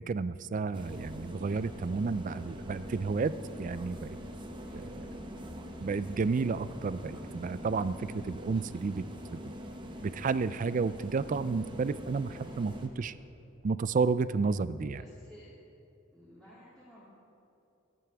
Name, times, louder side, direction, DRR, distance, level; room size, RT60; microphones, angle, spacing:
voice 1, 0.0-3.3 3.6-4.1 4.7-4.9 5.8-9.0 9.3-9.4 10.0-12.3 12.6-13.1 13.6-15.0, right 4 dB, 40° right, 15 dB, 0.4 m, -31 dB
sound 1, 0.7-12.9, equal, 25° right, 1.1 m, -43 dB
voice 2, 4.5-5.1 12.3-12.6 13.0-13.3 15.0-15.6 16.1-17.0, equal, 5° left, -11 dB, 2.9 m, -56 dB
25.0 x 9.2 x 3.5 m, 2.7 s
head